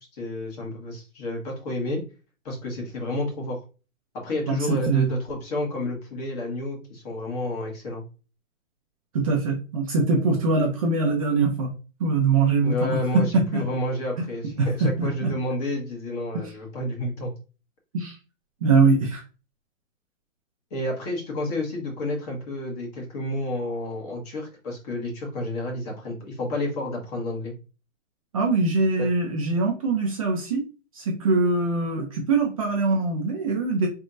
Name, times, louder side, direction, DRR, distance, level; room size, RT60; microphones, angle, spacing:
voice 1, 0.2-2.0 2.4-3.6 4.2-8.0 12.6-17.3 20.7-27.5 29.0-29.1, left 1 dB, 30° left, 0 dB, 1.5 m, -30 dB
voice 2, 4.5-5.1 9.1-11.7 12.0-13.6 14.6-15.3 17.9-18.2 18.6-19.2 28.3-30.6 30.9-33.9, right 3 dB, 25° right, 0 dB, 0.6 m, -22 dB
4.4 x 3.2 x 2.5 m, 0.33 s
hypercardioid pair, 155°, 39 cm